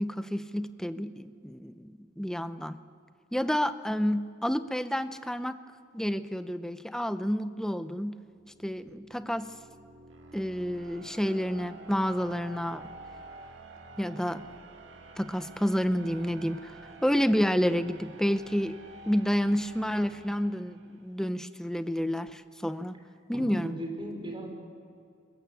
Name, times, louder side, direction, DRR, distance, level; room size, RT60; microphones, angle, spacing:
voice 1, 0.0-2.8 3.3-5.5 5.9-8.2 8.6-9.5 10.3-12.8 14.0-14.5 15.2-16.7 17.0-18.8 19.1-23.0 23.3-23.7, equal, 5° left, 11 dB, 0.7 m, -29 dB
sound 1, 8.3-21.2, right 2 dB, 75° right, 2.2 m, -49 dB
voice 2, 23.3-24.5, right 1 dB, 25° right, 2 dB, 4.6 m, -37 dB
23.5 x 21.0 x 8.4 m, 2.5 s
head